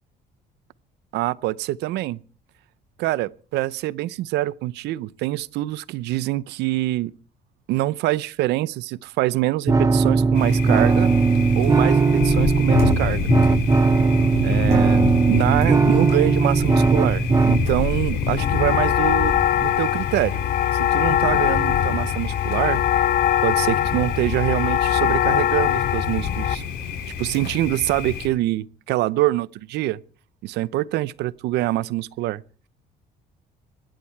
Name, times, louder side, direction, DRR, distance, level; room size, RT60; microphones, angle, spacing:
voice 1, 1.1-2.2 3.0-7.1 7.7-11.1 11.6-13.3 14.4-19.3 19.6-20.4 20.7-22.8 23.4-26.6 27.2-30.0 30.4-32.4, right 16 dB, 85° right, 0.7 m, -25 dB
sound 1, 9.7-17.7, right 4 dB, 20° right, 0.9 m, -18 dB
Thunder, 10.3-28.3, left 6 dB, 75° left, 5.5 m, -28 dB
sound 2, 18.4-26.5, left 11 dB, 60° left, 0.9 m, -22 dB
24.5 x 10.5 x 4.6 m
cardioid pair, 110°, 17 cm